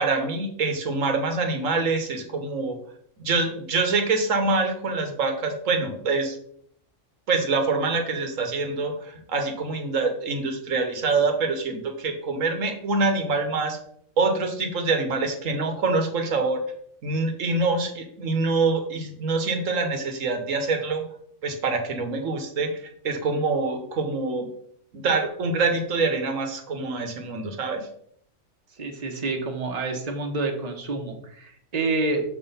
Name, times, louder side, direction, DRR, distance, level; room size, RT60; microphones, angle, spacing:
voice 1, 0.0-2.8 3.2-6.4 7.3-13.8 14.2-16.6 17.0-21.0 21.4-24.5 24.9-27.9, right 3 dB, 90° right, 5 dB, 1.4 m, -25 dB
voice 2, 28.8-32.2, right 3 dB, 35° right, 3 dB, 1.1 m, -28 dB
6.6 x 3.8 x 5.5 m, 0.67 s
omnidirectional pair, 1.3 m